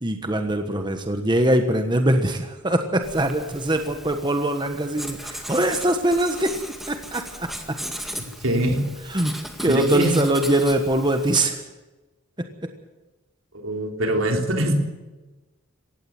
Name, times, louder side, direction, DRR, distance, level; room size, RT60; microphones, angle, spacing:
voice 1, 0.0-6.5 6.9-7.8 9.1-9.3 9.6-11.6 12.4-12.5, right 1 dB, 20° right, 6 dB, 1.4 m, -22 dB
Writing, 3.0-11.4, equal, ahead, 2.0 m, -37 dB
voice 2, 8.4-8.8 9.7-10.2 13.5-14.8, right 1 dB, 75° right, 3 dB, 3.7 m, -23 dB
17.5 x 16.0 x 9.5 m, 1.1 s
head